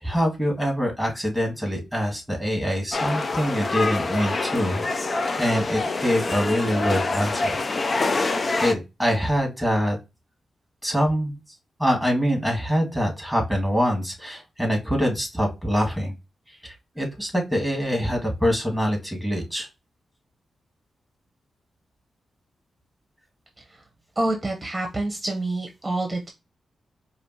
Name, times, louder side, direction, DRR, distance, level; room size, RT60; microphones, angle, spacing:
voice 1, 0.0-4.9 5.4-7.9 8.6-10.0 10.8-11.4 11.8-16.1 16.5-19.7, equal, 5° left, 1 dB, 1.9 m, -24 dB
sound 1, 2.9-8.7, left 3 dB, 45° left, 0.4 m, -26 dB
voice 2, 24.2-26.3, right 2 dB, 20° right, 2 dB, 0.9 m, -27 dB
5.0 x 2.5 x 2.8 m, 0.25 s
cardioid pair, 80°, 0 cm